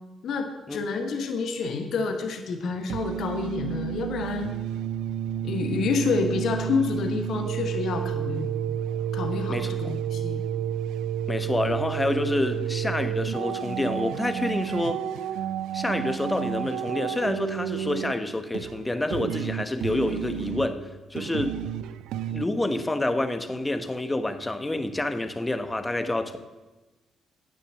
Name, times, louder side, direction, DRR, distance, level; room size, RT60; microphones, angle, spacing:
voice 1, 0.2-4.5 5.4-8.6 9.1-10.4, left 4 dB, 55° left, 5 dB, 1.2 m, -28 dB
sound 1, 2.7-22.5, right 10 dB, 60° right, 0.3 m, -31 dB
voice 2, 11.3-15.0 15.7-21.6 22.3-26.4, left 2 dB, 15° left, 9 dB, 1.1 m, -28 dB
10.0 x 9.3 x 6.4 m, 1.1 s
figure-of-eight pair, 40°, 0 cm